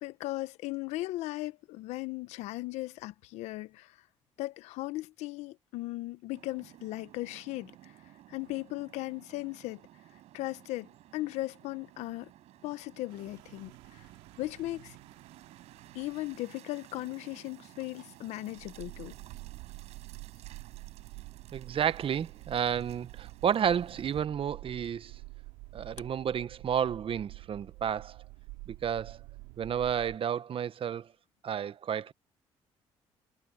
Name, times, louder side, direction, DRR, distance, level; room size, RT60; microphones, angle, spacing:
voice 1, 0.0-4.0 4.4-7.9 8.3-9.8 10.3-12.3 12.6-14.1 14.4-15.0 15.9-19.1, left 18 dB, 80° left, 1.0 m, -37 dB
sound 1, 6.3-24.2, right 14 dB, 75° right, 5.0 m, -55 dB
sound 2, 13.1-16.5 18.5-30.2, right 24 dB, 90° right, 2.8 m, -48 dB
voice 2, 21.5-25.1 25.7-28.2 28.7-29.2 29.6-31.1 31.4-32.1, right 8 dB, 55° right, 1.2 m, -31 dB
supercardioid pair, 60°, 11 cm